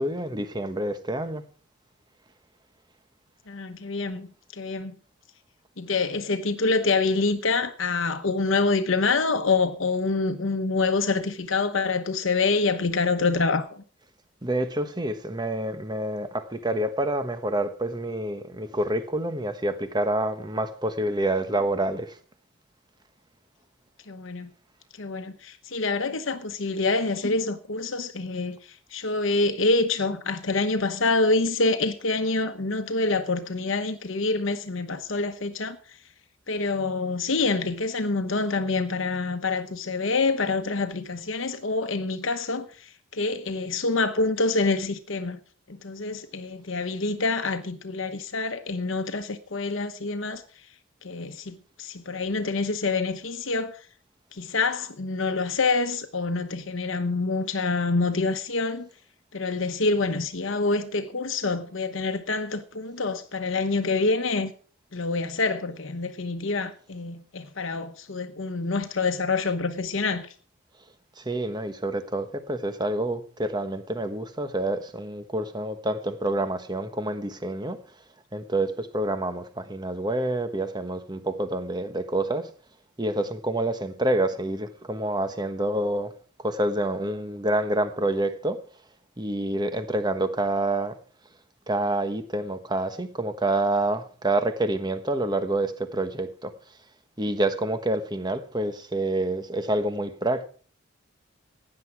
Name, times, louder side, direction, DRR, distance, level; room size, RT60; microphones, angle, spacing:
voice 1, 0.0-1.4 14.4-22.2 71.2-77.8 78.3-82.5 83.0-88.6 89.2-91.0 91.7-96.5 97.2-100.5, right 1 dB, 20° right, 1.2 m, -27 dB
voice 2, 3.5-4.3 4.5-4.9 5.8-13.8 24.1-24.5 25.0-35.8 36.5-45.4 45.7-50.4 51.0-53.8 54.3-58.9 59.3-64.5 64.9-70.3, left 3 dB, 65° left, 1.0 m, -26 dB
16.0 x 10.0 x 4.7 m
head